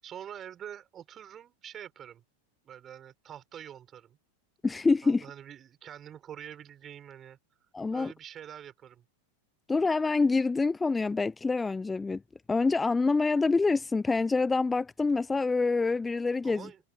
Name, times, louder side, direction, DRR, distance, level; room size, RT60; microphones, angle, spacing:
voice 1, 0.0-2.2 2.6-4.2 5.0-7.4 7.9-9.1 16.4-16.8, right 10 dB, 25° right, 7.1 m, -45 dB
voice 2, 4.6-5.2 7.7-8.1 9.7-12.2 12.5-16.7, left 3 dB, 10° left, 0.9 m, -26 dB
figure-of-eight pair, 90°, 0 cm